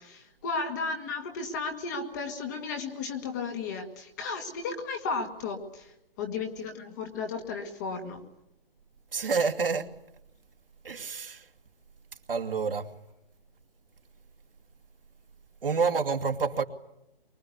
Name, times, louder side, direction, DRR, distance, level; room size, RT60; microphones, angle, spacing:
voice 1, 0.0-5.9 6.2-8.2, left 4 dB, 20° left, 1.9 m, -34 dB
voice 2, 9.1-9.9 10.8-11.4 12.3-12.9 15.6-16.6, right 5 dB, 65° right, 2.5 m, -28 dB
24.0 x 23.0 x 9.6 m
hypercardioid pair, 165°, 30 cm